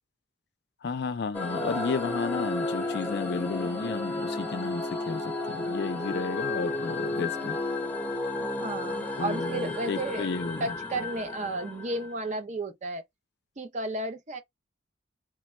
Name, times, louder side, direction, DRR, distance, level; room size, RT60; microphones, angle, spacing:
voice 1, 0.8-7.6 9.2-10.7, left 4 dB, 55° left, 0.4 m, -33 dB
sound 1, 1.3-12.3, left 2 dB, 10° left, 0.7 m, -32 dB
voice 2, 8.6-10.3 10.6-13.0 13.6-14.4, right 2 dB, 35° right, 0.5 m, -33 dB
3.3 x 2.2 x 3.0 m
head